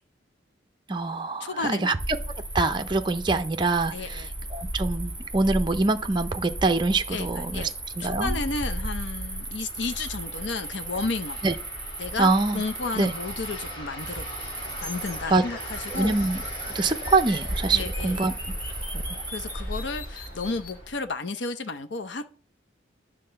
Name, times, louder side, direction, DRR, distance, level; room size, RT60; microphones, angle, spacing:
voice 1, 0.9-2.0 2.5-7.7 8.0-8.4 11.4-11.6 12.2-12.6 12.9-13.1 15.3-15.4 15.9-16.4 16.7-18.3 18.9-19.2, right 3 dB, 25° right, 0.5 m, -25 dB
voice 2, 1.4-1.9 3.9-4.3 7.1-7.7 8.0-11.4 12.0-14.3 14.8-16.1 17.7-18.2 19.3-22.2, left 3 dB, 70° left, 0.7 m, -32 dB
Cricket, 2.0-20.9, right 1 dB, 10° right, 2.6 m, -35 dB
sound 1, 6.1-20.9, equal, 30° left, 3.1 m, -43 dB
sound 2, 14.8-20.8, left 4 dB, 50° left, 1.2 m, -44 dB
9.8 x 3.7 x 6.7 m
head